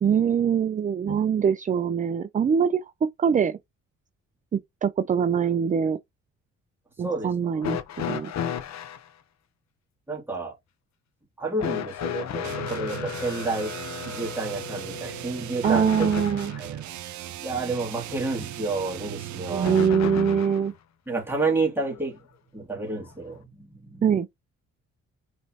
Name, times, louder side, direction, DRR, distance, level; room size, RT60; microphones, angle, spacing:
voice 1, 0.0-2.8 3.2-3.6 4.5-6.0 7.0-8.3 15.6-16.5 19.5-20.7 24.0-24.3, right 7 dB, 25° right, 0.4 m, -23 dB
voice 2, 7.0-7.6 10.1-10.5 11.4-13.7 14.1-16.1 16.6-16.8 17.2-19.8 21.1-22.2 22.5-24.0, right 3 dB, 5° right, 2.3 m, -30 dB
sound 1, 7.6-9.1 11.6-16.7 19.6-20.7 21.9-22.0 23.1-23.2, left 8 dB, 65° left, 0.8 m, -33 dB
sound 2, 12.4-20.0, right 13 dB, 70° right, 0.7 m, -38 dB
5.3 x 3.1 x 2.8 m
cardioid pair, 90°, 30 cm